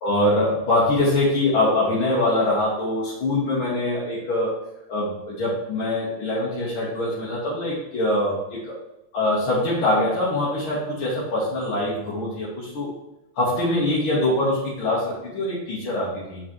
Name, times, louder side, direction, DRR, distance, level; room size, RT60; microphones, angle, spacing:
voice 1, 0.0-4.5 4.9-8.7 9.1-12.9 13.4-16.4, left 1 dB, 90° left, -7 dB, 2.3 m, -23 dB
7.7 x 5.2 x 3.1 m, 0.92 s
omnidirectional pair, 2.2 m